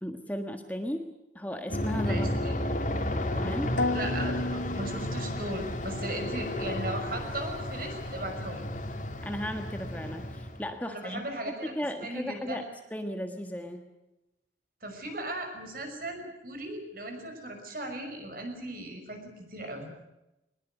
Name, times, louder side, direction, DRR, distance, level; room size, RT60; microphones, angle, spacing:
voice 1, 0.0-2.3 3.3-3.8 9.2-12.6 12.9-13.8, equal, 10° left, 5 dB, 1.5 m, -36 dB
Aircraft, 1.7-10.7, left 1 dB, 40° left, 3.1 m, -32 dB
voice 2, 2.1-2.6 3.9-8.7 10.9-11.7 12.0-12.7 14.8-19.9, right 1 dB, 50° right, 5 dB, 5.9 m, -37 dB
sound 1, 3.8-5.7, left 2 dB, 90° left, 2.3 m, -33 dB
22.0 x 21.0 x 8.1 m, 0.94 s
head